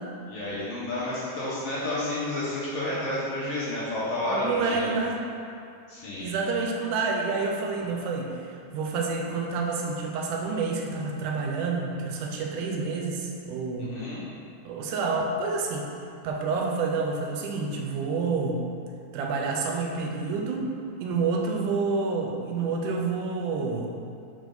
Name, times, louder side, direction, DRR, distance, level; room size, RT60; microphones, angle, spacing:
voice 1, 0.3-4.9 5.9-6.3 7.8-7.9 13.8-14.2, left 1 dB, 65° left, -9 dB, 1.6 m, -30 dB
voice 2, 4.3-5.2 6.2-14.0 14.7-15.9 16.2-18.6 19.1-20.7 21.0-23.9, right 4 dB, 85° right, 0 dB, 2.1 m, -28 dB
5.0 x 4.9 x 3.9 m, 2.4 s
omnidirectional pair, 3.7 m